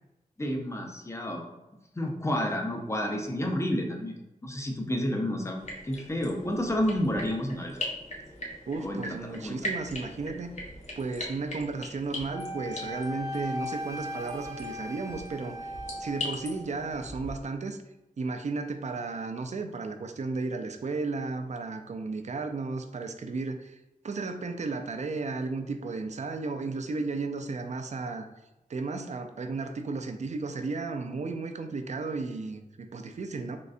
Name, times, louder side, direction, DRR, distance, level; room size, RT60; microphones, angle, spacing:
voice 1, 0.4-1.5 2.0-5.6 5.8-7.8 8.8-9.6, left 1 dB, 20° left, 2 dB, 0.6 m, -30 dB
sound 1, 5.6-17.3, left 1 dB, 50° left, 0.9 m, -40 dB
voice 2, 8.7-10.5 11.0-15.7 16.0-17.8 18.2-23.8 24.0-28.3 28.7-33.6, right 3 dB, 55° right, 6 dB, 0.4 m, -34 dB
Wind instrument woodwind instrument, 12.3-16.6, left 1 dB, 20° right, 0.8 m, -38 dB
3.8 x 3.1 x 2.5 m, 0.97 s
wide cardioid pair, 100°, 15 cm